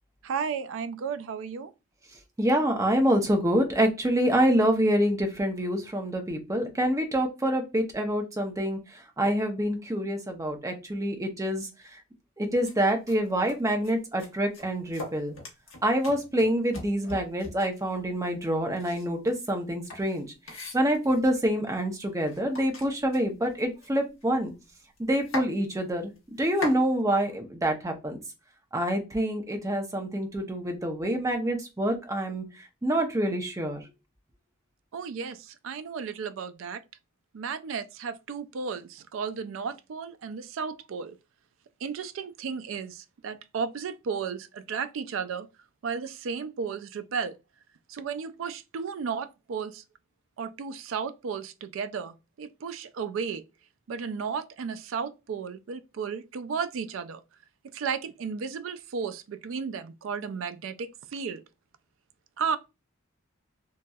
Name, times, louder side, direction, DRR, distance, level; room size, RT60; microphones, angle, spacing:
voice 1, 0.2-1.7 34.9-36.8 37.3-41.2 41.8-45.5 45.8-47.4 47.9-49.8 50.4-53.4 53.9-57.2 57.7-61.4 62.4-62.6, right 6 dB, 70° right, 0.3 m, -34 dB
voice 2, 2.4-11.7 12.4-15.3 15.8-20.3 20.7-24.5 25.0-26.1 26.4-28.2 28.7-32.4 32.8-33.8, equal, 15° right, 0.6 m, -26 dB
sound 1, 12.6-12.7 13.1-13.2 13.5-13.9 14.2-17.8 18.7-21.3 21.9-22.0 22.3-24.4 24.7-24.8 25.0-25.5 26.2-26.8, left 2 dB, 75° left, 1.0 m, -40 dB
3.0 x 2.6 x 2.2 m
head